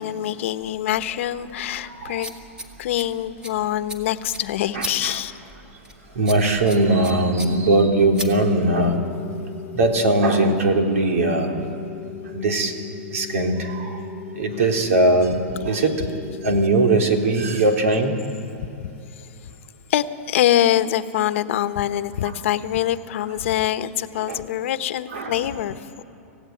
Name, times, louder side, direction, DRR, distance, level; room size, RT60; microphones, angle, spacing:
voice 1, 0.0-2.4 2.8-5.3 18.8-19.3 19.9-26.0, left 12 dB, 60° left, 12 dB, 1.1 m, -24 dB
sound 1, 0.6-9.0, equal, 10° right, 1.8 m, -39 dB
voice 2, 1.8-2.2 4.7-5.2 6.1-9.0 9.7-11.6 12.3-12.7 13.1-14.0 14.3-16.0 16.4-18.2 24.3-24.4 25.1-25.3, right 2 dB, 75° right, 3 dB, 3.3 m, -20 dB
sound 2, 7.4-17.4, left 10 dB, 15° left, 1.3 m, -37 dB
25.5 x 16.0 x 9.3 m, 2.8 s
hypercardioid pair, 145°, 8 cm